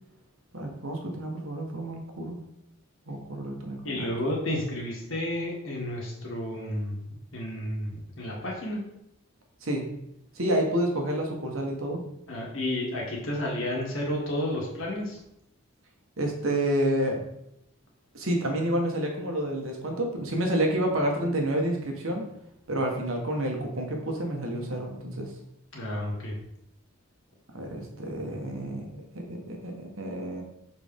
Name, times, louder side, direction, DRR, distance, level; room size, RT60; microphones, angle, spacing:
voice 1, 0.5-2.4 3.1-4.1 9.6-9.9 10.3-12.0 16.2-17.2 18.1-22.3 22.7-25.3 27.5-30.4, right 1 dB, 70° right, 1 dB, 1.4 m, -29 dB
voice 2, 3.8-8.8 12.3-15.2 25.7-26.3, left 1 dB, 65° left, -3 dB, 2.0 m, -31 dB
6.5 x 4.5 x 3.6 m, 0.78 s
head